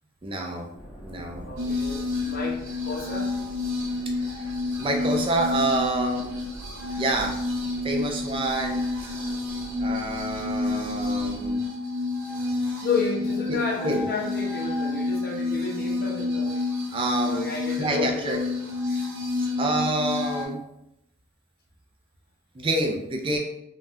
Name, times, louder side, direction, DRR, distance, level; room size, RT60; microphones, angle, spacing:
voice 1, 0.2-0.7 1.0-1.5 4.1-4.2 4.8-6.3 7.0-7.4 7.8-8.8 9.8-11.6 13.5-13.6 13.8-14.0 16.9-17.5 17.8-18.4 19.4-20.6 22.5-23.4, right 2 dB, 25° right, 2 dB, 0.3 m, -27 dB
sound 1, 0.7-11.5, equal, 10° right, 1.0 m, -44 dB
voice 2, 1.5-3.3 12.8-16.6 17.2-18.5, left 3 dB, 45° left, -1 dB, 0.7 m, -31 dB
sound 2, 1.6-20.5, left 3 dB, 75° right, 0.7 m, -29 dB
3.4 x 2.2 x 2.6 m, 0.83 s
head